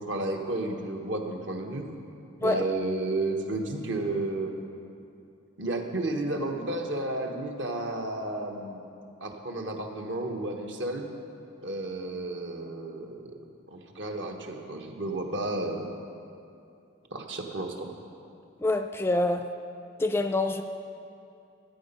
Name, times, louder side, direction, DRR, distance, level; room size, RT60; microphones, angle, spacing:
voice 1, 0.0-1.9 2.4-4.5 5.6-8.9 9.2-11.1 11.6-13.3 13.7-15.9 17.1-17.9, right 2 dB, 70° right, 3 dB, 1.2 m, -32 dB
voice 2, 18.6-19.4 20.0-20.6, left 2 dB, 10° left, 7 dB, 0.3 m, -26 dB
13.0 x 8.9 x 5.4 m, 2.6 s
head